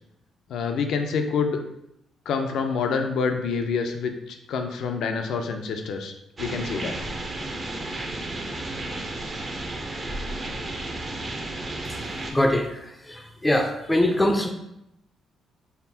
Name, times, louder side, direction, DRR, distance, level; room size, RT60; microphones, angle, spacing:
voice 1, 0.5-1.6 2.3-6.1 6.4-7.0, left 5 dB, 75° left, 5 dB, 0.5 m, -27 dB
sound 1, 6.4-12.3, right 2 dB, 35° right, 0.6 m, -33 dB
voice 2, 12.3-12.7 13.1-14.5, left 1 dB, 10° left, 5 dB, 0.4 m, -22 dB
5.6 x 2.0 x 2.7 m, 0.82 s
cardioid pair, 90°, 0 cm